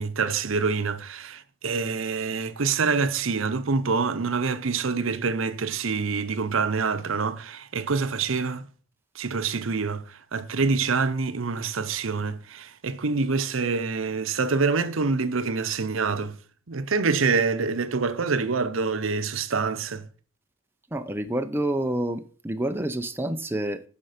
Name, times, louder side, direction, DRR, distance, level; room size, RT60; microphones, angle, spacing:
voice 1, 0.0-8.7 9.1-16.4 16.7-20.1, right 4 dB, 75° right, 0.8 m, -26 dB
voice 2, 20.9-23.8, right 1 dB, 10° right, 0.7 m, -28 dB
9.8 x 5.8 x 6.6 m
head